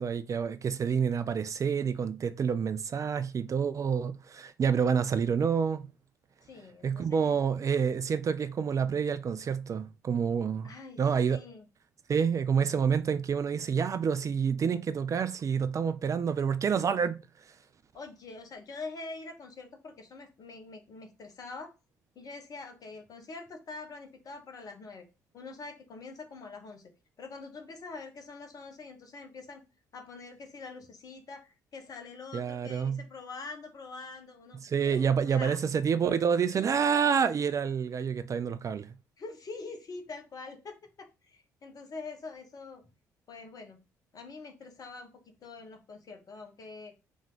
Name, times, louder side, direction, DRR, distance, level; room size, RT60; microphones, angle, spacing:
voice 1, 0.0-5.9 6.8-10.7 11.0-11.4 12.1-17.2 32.3-33.0 34.6-38.9, right 6 dB, 35° right, 0.5 m, -28 dB
voice 2, 6.4-7.4 10.6-11.6 17.9-21.7 22.1-25.0 25.3-26.8 27.2-29.6 29.9-35.6 36.6-36.7 39.2-42.8 43.3-43.8 44.1-45.1 45.4-46.9, left 3 dB, 45° left, 1.6 m, -45 dB
5.3 x 3.6 x 5.1 m
figure-of-eight pair, 45°, 9 cm